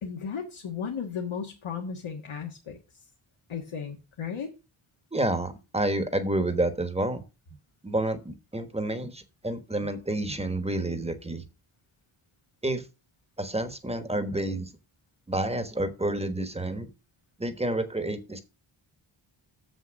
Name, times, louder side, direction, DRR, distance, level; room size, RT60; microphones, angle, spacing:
voice 1, 0.0-2.8 3.5-4.5, left 6 dB, 75° left, 1 dB, 1.6 m, -35 dB
voice 2, 5.1-7.2 7.8-11.4 12.6-12.9 13.4-14.7 15.3-16.9 17.4-18.4, right 1 dB, 10° right, 9 dB, 1.2 m, -29 dB
7.1 x 6.1 x 6.3 m, 0.29 s
wide cardioid pair, 130°, 49 cm